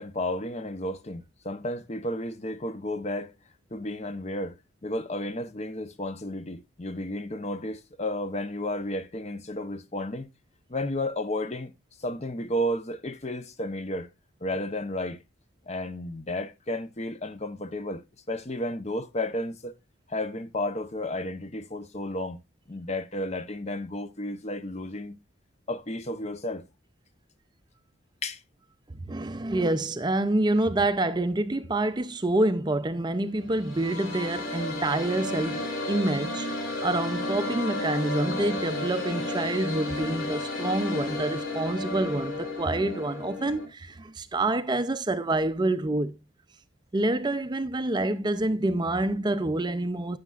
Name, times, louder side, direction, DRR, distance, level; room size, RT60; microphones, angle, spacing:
voice 1, 0.0-3.3 3.7-10.3 10.7-11.7 12.0-14.1 14.4-15.2 15.7-19.8 20.1-22.4 22.7-25.2 25.7-26.6 28.2-28.4, left 1 dB, 35° left, 0.7 m, -32 dB
voice 2, 29.1-46.2 46.9-50.2, right 2 dB, 20° right, 0.5 m, -27 dB
sound 1, 33.4-43.6, left 2 dB, 60° left, 4.9 m, -32 dB
11.5 x 9.3 x 2.4 m
head